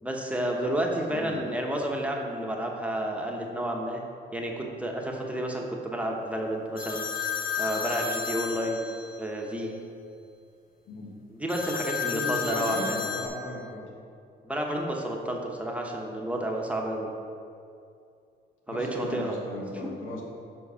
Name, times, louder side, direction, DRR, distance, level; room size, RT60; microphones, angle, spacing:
voice 1, 0.0-4.0 4.3-7.1 7.6-8.8 9.2-9.7 11.3-13.0 14.4-17.1 18.7-19.4 19.8-20.2, right 1 dB, 5° right, 0 dB, 1.0 m, -31 dB
voice 2, 1.1-1.4 10.8-11.1 12.0-13.9 18.7-20.2, left 2 dB, 80° left, -2 dB, 1.5 m, -36 dB
sound 1, 6.8-9.3 11.5-13.3, left 6 dB, 45° left, 0.8 m, -32 dB
5.9 x 4.6 x 5.6 m, 2.5 s
cardioid pair, 90°, 20 cm